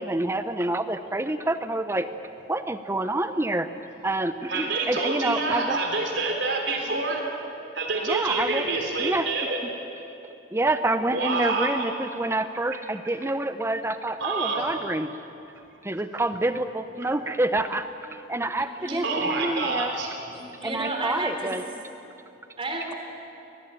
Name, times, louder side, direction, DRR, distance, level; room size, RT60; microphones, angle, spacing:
voice 1, 0.0-2.1 2.5-3.7 4.0-5.8 8.1-8.7 9.0-9.5 10.5-15.1 15.8-19.9 20.6-21.6, right 2 dB, 15° right, 10 dB, 0.7 m, -27 dB
voice 2, 4.5-7.2 7.7-9.6 11.1-11.9 14.2-14.7 19.0-20.3, right 3 dB, 75° right, 1 dB, 3.5 m, -27 dB
voice 3, 18.6-19.1 20.3-21.6 22.6-22.9, right 2 dB, 30° right, 2 dB, 3.6 m, -32 dB
24.0 x 18.5 x 8.9 m, 2.8 s
head